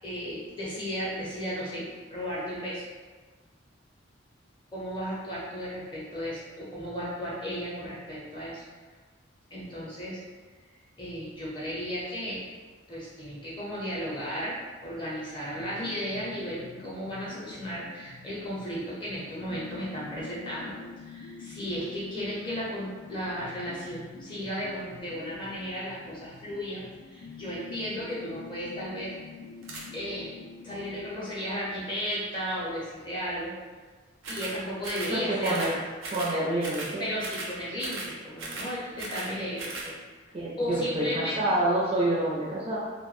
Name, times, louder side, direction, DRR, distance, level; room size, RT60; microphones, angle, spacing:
voice 1, 0.0-2.8 4.7-8.6 9.5-10.2 11.0-12.4 12.9-20.7 21.0-29.1 29.9-30.3 30.6-33.5 34.3-35.7 37.0-40.0 40.6-41.4, equal, 25° left, -7 dB, 0.6 m, -34 dB
sound 1, 15.6-31.1, left 4 dB, 75° left, 0.4 m, -47 dB
sound 2, 29.6-29.9 34.2-34.6 34.8-35.2 35.4-35.8 36.0-36.3 36.6-36.9 37.2-37.5 37.8-38.1 38.4-39.3 39.6-39.9, right 2 dB, 90° right, 0.5 m, -37 dB
voice 2, 35.1-35.8 36.1-37.0 40.3-42.8, right 1 dB, 30° right, -5 dB, 0.4 m, -27 dB
2.2 x 2.1 x 3.0 m, 1.4 s
head